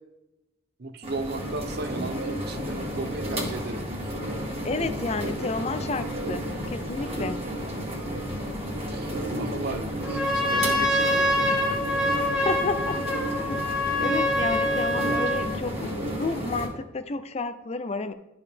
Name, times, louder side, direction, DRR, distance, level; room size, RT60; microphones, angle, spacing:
voice 1, 0.8-4.1 8.9-9.1 9.4-12.0, right 3 dB, 55° right, 9 dB, 0.7 m, -35 dB
sound 1, 1.0-16.7, equal, 30° right, 1.8 m, -32 dB
voice 2, 4.6-7.5 12.2-18.1, left 3 dB, 35° left, 11 dB, 0.5 m, -31 dB
Trumpet, 10.0-15.5, left 1 dB, 5° right, 1.2 m, -25 dB
12.5 x 4.7 x 3.4 m, 0.96 s
head